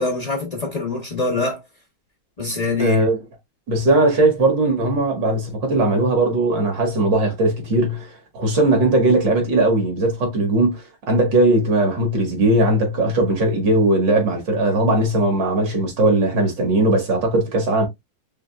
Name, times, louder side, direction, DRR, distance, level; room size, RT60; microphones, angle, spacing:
voice 1, 0.0-1.6 2.4-3.0, left 3 dB, 40° left, 0.5 m, -24 dB
voice 2, 2.8-3.2 3.7-8.1 8.3-17.9, right 2 dB, 65° right, 2.3 m, -19 dB
5.1 x 3.3 x 2.3 m
omnidirectional pair, 2.2 m